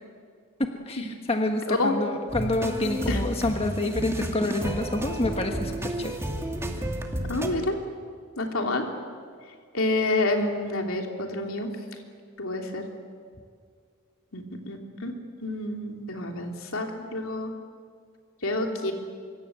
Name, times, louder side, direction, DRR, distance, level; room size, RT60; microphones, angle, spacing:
voice 1, 0.9-6.2, left 2 dB, 30° left, 4 dB, 1.5 m, -28 dB
sound 1, 2.3-7.5, right 1 dB, 15° right, 2.3 m, -31 dB
voice 2, 7.3-7.8 8.4-8.8 9.7-11.7 12.4-12.9 14.3-15.1 15.4-17.5 18.4-18.9, left 2 dB, 75° left, 2 dB, 3.3 m, -28 dB
25.5 x 24.0 x 8.2 m, 2.1 s
head